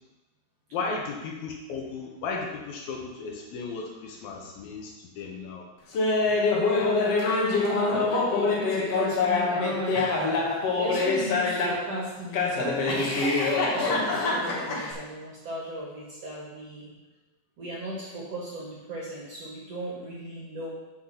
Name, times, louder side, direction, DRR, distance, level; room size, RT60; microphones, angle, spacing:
voice 1, 0.7-5.7, left 4 dB, 75° left, 0 dB, 2.7 m, -35 dB
Laughter, 5.9-11.9 12.3-14.9, left 3 dB, 55° left, 1.9 m, -25 dB
voice 2, 7.6-10.1 10.8-13.2 13.7-16.9 17.6-20.7, right 1 dB, 50° right, -4 dB, 2.3 m, -36 dB
7.6 x 6.5 x 5.8 m, 1.1 s
omnidirectional pair, 4.5 m